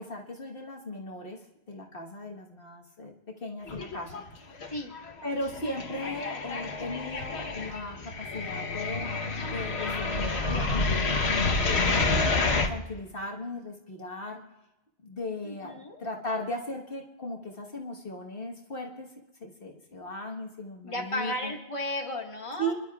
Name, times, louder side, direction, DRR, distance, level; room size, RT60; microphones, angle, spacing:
voice 1, 0.0-1.4 1.7-4.2 5.2-9.1 9.5-11.2 11.6-12.3 12.7-14.4 15.0-19.1 19.4-21.5 22.6-22.7, left 1 dB, 60° left, 0 dB, 1.6 m, -37 dB
sound 1, 3.7-4.3 4.6-12.7, left 3 dB, 85° left, 1.4 m, -29 dB
voice 2, 15.4-16.0 20.8-22.7, left 1 dB, 30° left, 1 dB, 1.7 m, -34 dB
26.5 x 11.5 x 2.4 m, 0.95 s
omnidirectional pair, 1.1 m